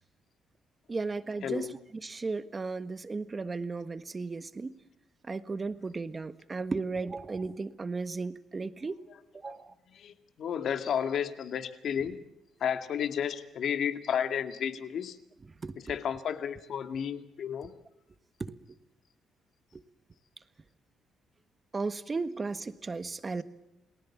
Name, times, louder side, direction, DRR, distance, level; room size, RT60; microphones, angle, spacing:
voice 1, 0.9-1.7 2.0-4.7 5.3-9.0 9.3-9.7 15.6-15.7 18.4-18.8 19.7-19.8 21.7-23.4, right 3 dB, 30° right, 12 dB, 1.5 m, -35 dB
voice 2, 1.4-1.7 9.5-9.6 9.9-12.2 12.6-15.2 15.9-17.7, left 8 dB, 65° left, 9 dB, 2.0 m, -32 dB
29.0 x 19.5 x 7.4 m, 0.88 s
cardioid pair, 90°, 0 cm